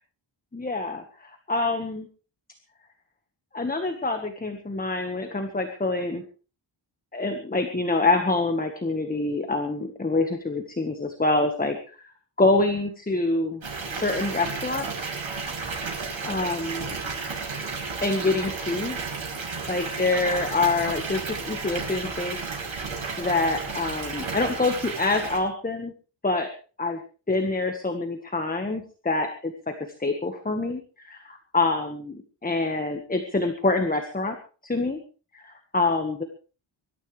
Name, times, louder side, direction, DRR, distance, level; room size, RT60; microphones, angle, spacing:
voice 1, 0.5-2.1 3.5-6.2 7.1-11.8 12.4-13.6 13.9-14.9 16.2-16.9 17.3-17.4 18.0-19.0 19.7-22.4 22.7-25.9 26.2-26.5 26.8-27.0 27.3-34.4 34.6-35.0 35.3-36.2, left 3 dB, 20° left, 5 dB, 1.5 m, -26 dB
Water tap faucet / Bathtub (filling or washing) / Fill (with liquid), 13.6-25.4, right 4 dB, 85° right, 6.5 m, -33 dB
24.5 x 13.0 x 3.4 m, 0.36 s
wide cardioid pair, 180°, 46 cm